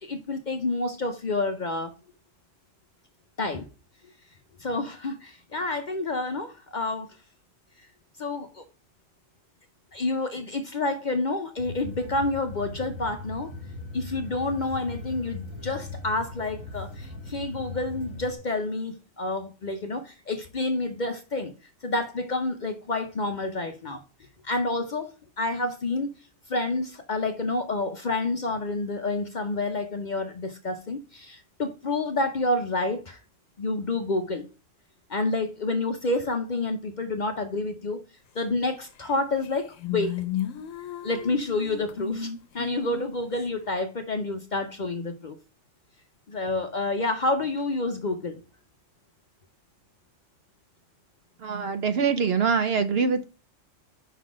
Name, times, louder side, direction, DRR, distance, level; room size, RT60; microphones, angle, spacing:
voice 1, 0.0-1.9 3.4-3.7 4.6-7.2 8.2-8.6 9.9-13.5 13.9-21.5 21.8-24.0 24.4-26.1 26.5-33.2 33.6-34.5 35.1-38.0 38.3-40.2 41.0-45.4 46.3-48.4, left 2 dB, 45° left, 0.6 m, -29 dB
sound 1, 11.6-18.4, left 3 dB, 20° right, 1.9 m, -39 dB
sound 2, 39.1-39.2 39.4-43.4, left 10 dB, 80° left, 1.0 m, -34 dB
voice 2, 51.4-53.2, right 5 dB, 60° right, 0.7 m, -24 dB
5.6 x 3.9 x 6.0 m
omnidirectional pair, 1.3 m